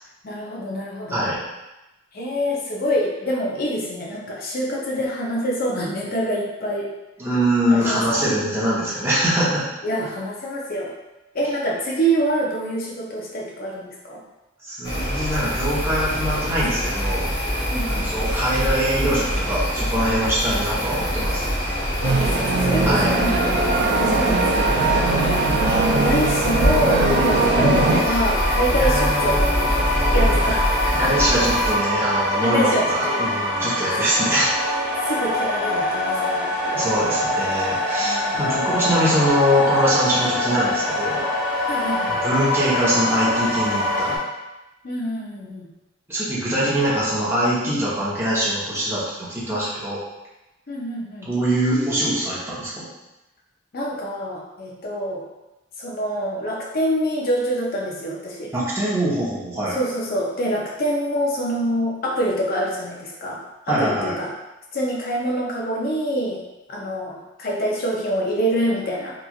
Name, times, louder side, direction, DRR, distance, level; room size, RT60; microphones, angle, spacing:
voice 1, 0.2-1.2 2.1-6.9 7.7-8.3 9.8-10.9 11.3-14.2 17.7-18.0 22.0-24.8 25.6-29.8 30.1-31.1 32.4-33.3 33.7-33.9 35.1-36.9 38.0-38.5 41.6-42.2 44.8-45.7 50.7-51.3 53.7-55.3 55.8-58.5 59.7-63.4 63.7-64.3 64.7-66.4 66.7-69.2, equal, 50° left, -2 dB, 0.6 m, -26 dB
voice 2, 7.2-9.7 14.6-17.3 17.9-21.4 22.9-23.1 28.7-30.5 30.9-34.6 36.7-41.2 42.1-44.2 46.1-50.0 51.2-52.9 58.5-59.8 63.7-64.1, equal, 15° right, -9 dB, 0.8 m, -23 dB
sound 1, 14.8-31.7, equal, 20° left, 1.1 m, -24 dB
sound 2, 22.0-28.0, right 3 dB, 60° right, 0.4 m, -20 dB
sound 3, 26.0-44.2, left 1 dB, 30° right, 1.2 m, -24 dB
2.9 x 2.4 x 2.4 m, 1.0 s
head